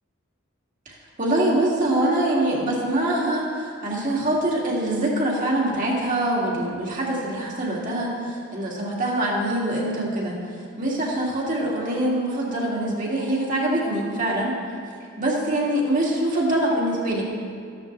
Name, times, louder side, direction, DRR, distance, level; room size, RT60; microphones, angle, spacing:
voice 1, 0.9-10.4 10.8-14.5 15.2-17.2, right 1 dB, 40° right, -4 dB, 2.6 m, -24 dB
14.0 x 13.0 x 3.4 m, 2.3 s
head